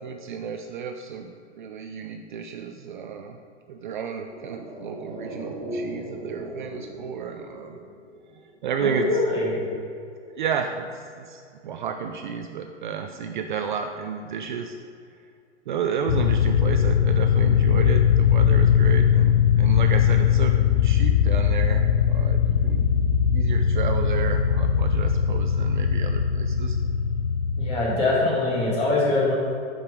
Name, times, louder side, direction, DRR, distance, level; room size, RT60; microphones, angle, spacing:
voice 1, 0.0-3.4 3.7-7.8 8.6-9.2 10.4-10.9 11.2-14.8 15.7-20.5 20.8-22.9 23.3-26.8, right 7 dB, 45° right, 5 dB, 0.4 m, -32 dB
sound 1, 4.0-8.6 8.8-8.9, right 1 dB, 10° right, 1.8 m, -37 dB
voice 2, 8.8-9.6 27.6-29.3, left 2 dB, 15° left, -5 dB, 1.8 m, -23 dB
sound 2, 16.1-27.8, left 8 dB, 60° left, 0.5 m, -20 dB
7.5 x 5.5 x 4.9 m, 2.4 s
hypercardioid pair, 160°, 34 cm